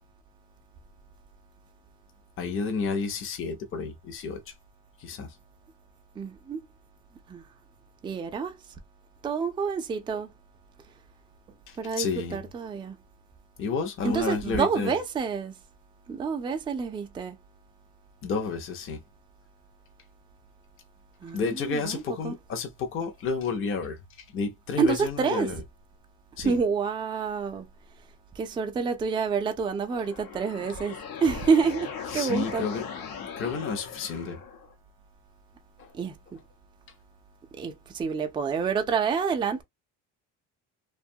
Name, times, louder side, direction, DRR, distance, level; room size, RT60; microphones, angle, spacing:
voice 1, 2.4-4.5 5.0-5.3 11.7-12.4 13.6-15.0 18.2-19.0 21.3-25.6 26.4-26.6 32.1-32.8 33.4-34.4 35.8-35.9, left 5 dB, 35° left, 0.6 m, -31 dB
voice 2, 6.2-6.6 7.3-7.4 8.0-8.6 9.2-10.3 11.8-13.0 14.0-15.5 16.1-17.4 21.2-22.4 24.8-25.5 26.4-27.7 28.4-32.7 35.9-36.4 37.6-39.6, right 5 dB, 15° right, 0.3 m, -28 dB
sound 1, 29.8-34.7, left 7 dB, 80° left, 0.9 m, -39 dB
2.5 x 2.3 x 2.6 m
cardioid pair, 130°, 36 cm